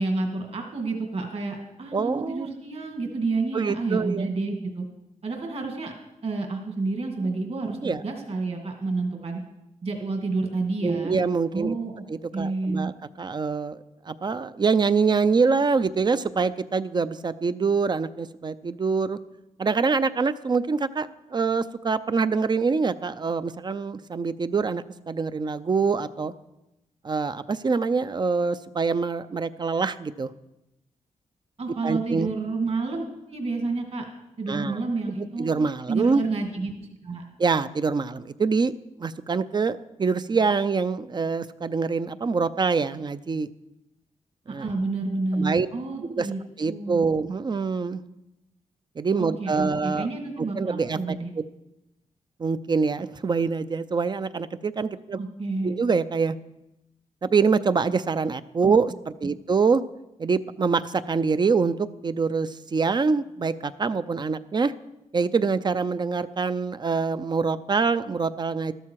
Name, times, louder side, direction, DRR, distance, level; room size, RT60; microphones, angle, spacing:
voice 1, 0.0-4.8 5.2-5.9 6.2-9.4 9.8-11.2 11.5-12.0 12.3-12.9 31.6-33.0 33.3-34.1 34.4-35.5 35.9-37.2 44.5-46.4 46.7-47.1 49.1-51.3 55.2-55.7, right 3 dB, 50° right, 2 dB, 2.3 m, -29 dB
voice 2, 1.9-2.5 3.5-4.3 7.8-8.0 10.8-11.7 12.1-12.9 13.2-13.8 14.1-19.2 19.6-26.3 27.0-30.3 31.8-32.3 34.5-34.8 35.4-36.2 37.4-38.7 39.0-43.5 44.5-44.6 45.4-45.7 46.0-46.3 46.6-48.0 49.0-50.1 50.6-51.4 52.4-55.2 55.6-56.4 57.2-58.9 59.2-59.8 60.2-64.7 65.1-68.7, right 4 dB, 35° right, 13 dB, 0.5 m, -25 dB
13.5 x 13.0 x 4.7 m, 0.91 s
wide cardioid pair, 110°, 13 cm